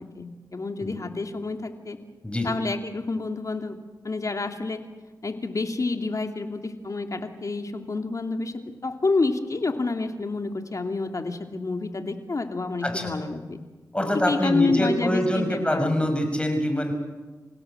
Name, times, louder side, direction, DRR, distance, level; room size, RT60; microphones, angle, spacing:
voice 1, 0.0-2.0 2.4-3.8 4.0-4.8 5.2-8.5 8.8-13.6 14.1-16.1, left 3 dB, 50° left, 5 dB, 2.7 m, -28 dB
voice 2, 12.8-13.1 13.9-16.9, left 1 dB, 15° left, 5 dB, 6.6 m, -25 dB
27.5 x 17.0 x 7.9 m, 1.2 s
cardioid pair, 45°, 7 cm